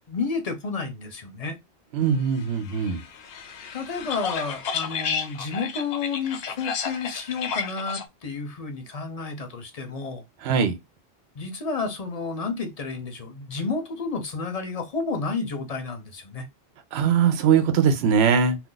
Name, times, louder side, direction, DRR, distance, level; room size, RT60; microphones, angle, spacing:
voice 1, 0.1-1.6 3.7-10.2 11.4-16.5, left 4 dB, 40° left, 0.6 m, -31 dB
voice 2, 1.9-3.0 10.4-10.8 16.9-18.6, right 7 dB, 75° right, 0.9 m, -21 dB
sound 1, 2.7-8.0, left 6 dB, 70° left, 0.8 m, -32 dB
2.5 x 2.3 x 3.7 m
omnidirectional pair, 1.1 m